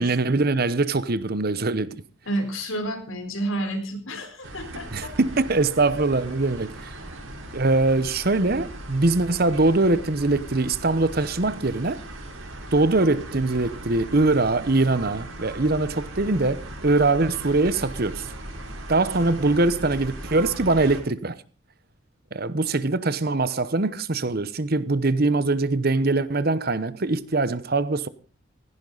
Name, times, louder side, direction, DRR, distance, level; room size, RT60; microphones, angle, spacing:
voice 1, 0.0-2.0 4.9-6.9 7.5-12.0 12.7-18.3 18.9-21.4 22.3-28.1, right 2 dB, 50° right, 0.9 m, -22 dB
voice 2, 2.3-5.1, right 1 dB, 80° left, 4.1 m, -30 dB
sound 1, 4.4-21.0, right 1 dB, 80° right, 4.9 m, -38 dB
16.5 x 16.5 x 4.0 m
head